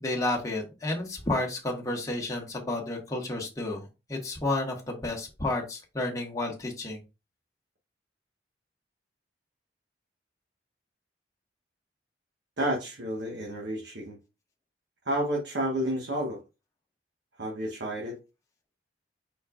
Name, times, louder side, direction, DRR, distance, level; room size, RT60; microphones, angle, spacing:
voice 1, 0.0-7.0, left 2 dB, 20° left, -1 dB, 1.3 m, -31 dB
voice 2, 12.6-14.2 15.0-16.4 17.4-18.2, right 1 dB, 80° right, -1 dB, 1.3 m, -30 dB
4.9 x 4.2 x 2.4 m, 0.27 s
head